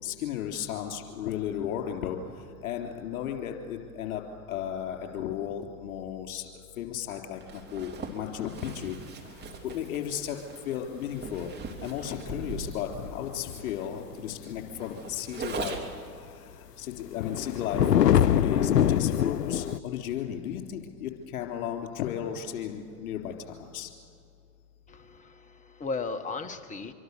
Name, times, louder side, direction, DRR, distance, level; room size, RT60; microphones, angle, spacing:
voice 1, 0.0-2.2 2.6-4.2 4.5-6.4 6.8-9.0 9.7-10.4 10.7-11.5 11.8-15.8 16.8-23.9, left 9 dB, 60° left, 4 dB, 4.0 m, -34 dB
Zipper (clothing), 7.4-16.1, right 4 dB, 20° right, 3.0 m, -41 dB
sound 1, 12.9-13.9 14.5-14.8 15.7-15.8 17.0-19.8, left 10 dB, 90° left, 0.6 m, -24 dB
voice 2, 24.9-26.9, left 4 dB, 15° left, 8 dB, 1.3 m, -36 dB
25.5 x 24.0 x 6.9 m, 2.4 s
hypercardioid pair, 100°, 46 cm